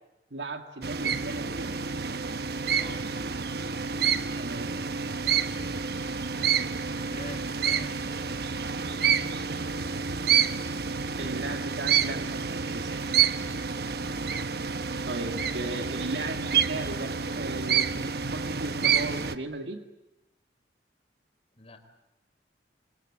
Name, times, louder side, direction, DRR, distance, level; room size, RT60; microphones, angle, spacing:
voice 1, 0.3-1.8 4.4-4.7 11.2-13.0 15.1-19.8, right 2 dB, 85° right, 6 dB, 2.0 m, -36 dB
sound 1, 0.8-19.4, right 7 dB, 60° right, 1.1 m, -28 dB
voice 2, 6.9-8.1 8.8-9.7 21.5-21.8, left 2 dB, 35° left, 6 dB, 4.0 m, -46 dB
28.5 x 24.0 x 8.6 m, 0.96 s
head